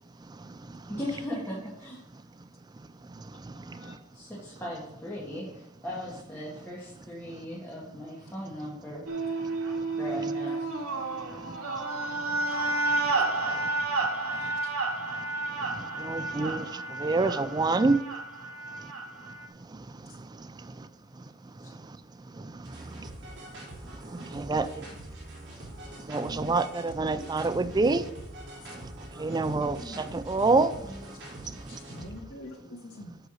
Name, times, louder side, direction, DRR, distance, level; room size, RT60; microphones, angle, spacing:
voice 1, 0.9-2.0 4.1-9.1 10.0-10.7 26.2-26.5 27.1-27.4 29.1-29.4 29.8-30.2 30.8-31.1, equal, 10° left, 1.7 m, -39 dB
sound 1, 9.1-19.5, right 3 dB, 85° right, 1.2 m, -31 dB
voice 2, 14.3-14.7 21.6-21.7 28.6-28.8 31.7-33.2, left 2 dB, 80° left, 2.0 m, -46 dB
voice 3, 16.0-16.7 17.0-18.0 24.3-24.7 26.1-28.0 29.2-30.7, right 3 dB, 20° right, 0.3 m, -26 dB
sound 2, 22.6-32.2, right 1 dB, 55° right, 3.8 m, -45 dB
7.8 x 5.1 x 6.2 m
head